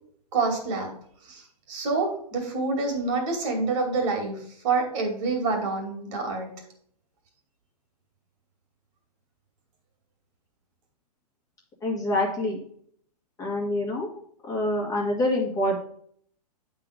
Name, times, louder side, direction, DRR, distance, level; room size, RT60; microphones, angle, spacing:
voice 1, 0.3-0.9 1.2-6.5, right 3 dB, 50° right, 2 dB, 2.5 m, -27 dB
voice 2, 11.8-12.6 13.4-14.1 14.4-15.8, left 1 dB, 15° left, -3 dB, 1.8 m, -26 dB
8.3 x 3.9 x 5.0 m, 0.63 s
hypercardioid pair, 135°, 21 cm